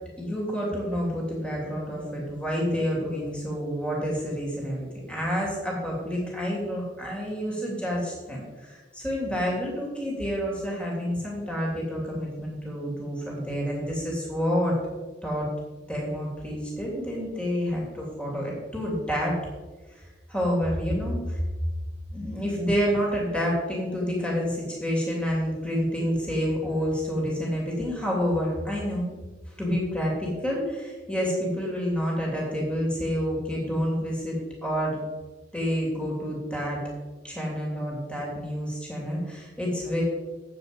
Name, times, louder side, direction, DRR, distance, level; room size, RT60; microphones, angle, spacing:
voice 1, 0.2-14.8 15.2-15.5 15.9-19.4 20.3-21.4 22.1-29.1 29.6-34.4 34.6-35.0 35.5-36.8 37.2-40.0, equal, 5° left, -3 dB, 2.7 m, -28 dB
9.1 x 7.7 x 5.2 m, 1.3 s
head